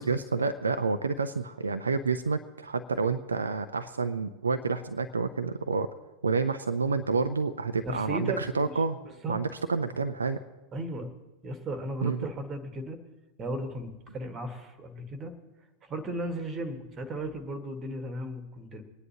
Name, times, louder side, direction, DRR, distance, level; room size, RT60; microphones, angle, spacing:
voice 1, 0.0-5.9 6.2-9.0 9.3-10.4 12.0-12.3, right 4 dB, 75° right, 9 dB, 0.5 m, -29 dB
voice 2, 7.8-8.8 9.0-9.4 10.7-11.1 11.4-13.0 13.4-15.3 15.8-18.8, right 1 dB, 25° right, 8 dB, 1.6 m, -36 dB
26.0 x 9.8 x 2.9 m, 1.1 s
figure-of-eight pair, 90°, 0 cm